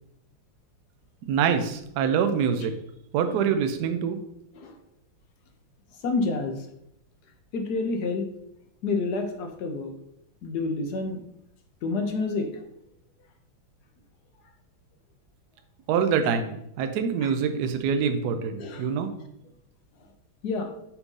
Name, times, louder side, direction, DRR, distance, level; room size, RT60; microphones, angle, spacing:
voice 1, 1.3-2.7 3.1-4.2 15.9-19.1, right 7 dB, 70° right, 7 dB, 1.0 m, -25 dB
voice 2, 6.0-6.6 7.5-8.3 8.8-9.9 10.4-11.2 11.8-12.5 17.2-17.3 18.6-18.9 20.4-20.7, left 3 dB, 65° left, 5 dB, 1.1 m, -28 dB
7.0 x 2.7 x 5.4 m, 0.78 s
omnidirectional pair, 2.2 m